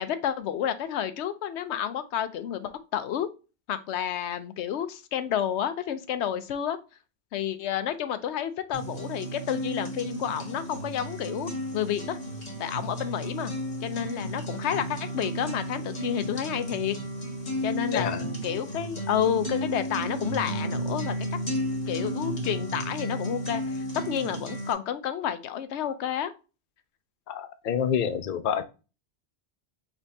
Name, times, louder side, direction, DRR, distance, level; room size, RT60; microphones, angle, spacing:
voice 1, 0.0-3.3 3.7-6.8 7.3-12.2 12.6-13.5 13.8-17.0 17.6-21.1 21.9-26.3, left 9 dB, 85° left, 0.9 m, -30 dB
sound 1, 8.7-24.7, right 1 dB, 40° left, 1.2 m, -33 dB
voice 2, 17.9-18.2 27.3-28.6, left 8 dB, 55° left, 0.6 m, -27 dB
5.2 x 3.5 x 2.7 m
omnidirectional pair, 1.1 m